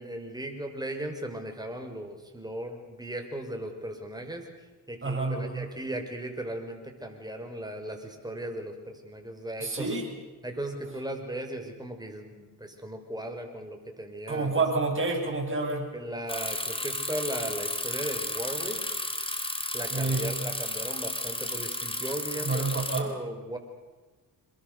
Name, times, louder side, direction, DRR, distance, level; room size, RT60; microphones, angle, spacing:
voice 1, 0.0-10.0 10.4-14.6 15.9-19.0 19.7-23.6, right 1 dB, 10° right, 4 dB, 5.7 m, -37 dB
voice 2, 5.0-5.7 9.6-10.1 14.3-15.9 19.9-20.3 22.4-23.1, right 3 dB, 30° right, 1 dB, 8.0 m, -28 dB
Bicycle, 16.3-23.0, left 1 dB, 15° left, 3.8 m, -33 dB
27.0 x 22.0 x 6.9 m, 1.2 s
cardioid pair, 60°, 40 cm